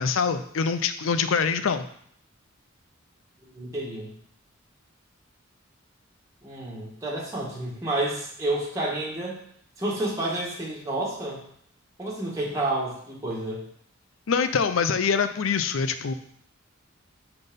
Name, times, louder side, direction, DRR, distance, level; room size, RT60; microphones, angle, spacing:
voice 1, 0.0-1.8 14.3-16.1, left 5 dB, 75° left, 10 dB, 0.5 m, -24 dB
voice 2, 3.5-4.1 6.4-9.4 9.8-11.4 12.0-13.6, right 1 dB, 15° right, -5 dB, 1.5 m, -30 dB
5.5 x 4.0 x 5.3 m, 0.67 s
head